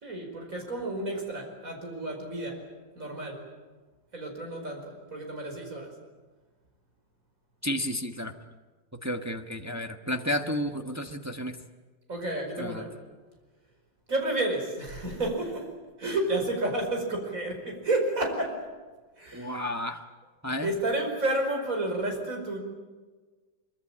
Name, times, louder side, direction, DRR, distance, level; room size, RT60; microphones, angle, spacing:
voice 1, 0.0-2.6 3.0-3.4 4.1-5.9 12.1-12.9 14.1-15.7 16.0-18.6 19.2-19.6 20.6-22.6, right 2 dB, 45° right, 2 dB, 5.6 m, -31 dB
voice 2, 7.6-8.3 9.0-11.6 12.6-12.8 19.3-20.0 20.4-20.7, left 1 dB, 10° right, 5 dB, 0.9 m, -32 dB
24.0 x 23.5 x 8.8 m, 1.3 s
omnidirectional pair, 2.0 m